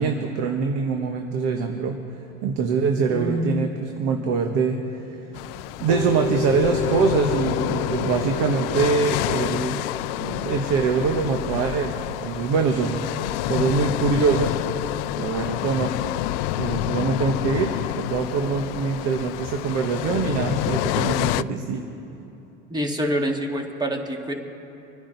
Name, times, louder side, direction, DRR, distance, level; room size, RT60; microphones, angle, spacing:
voice 1, 0.0-2.0 2.4-4.8 5.1-5.2 5.8-9.8 10.2-13.1 13.5-14.5 15.2-16.0 16.6-21.8, right 5 dB, 60° right, 4 dB, 1.3 m, -24 dB
voice 2, 3.1-3.6 22.7-24.3, equal, 15° right, 2 dB, 2.0 m, -26 dB
sound 1, 5.3-21.4, left 17 dB, 70° left, 0.4 m, -28 dB
sound 2, 5.9-13.6, left 2 dB, 80° right, 4.0 m, -32 dB
26.5 x 10.5 x 4.1 m, 2.9 s
supercardioid pair, 100°, 29 cm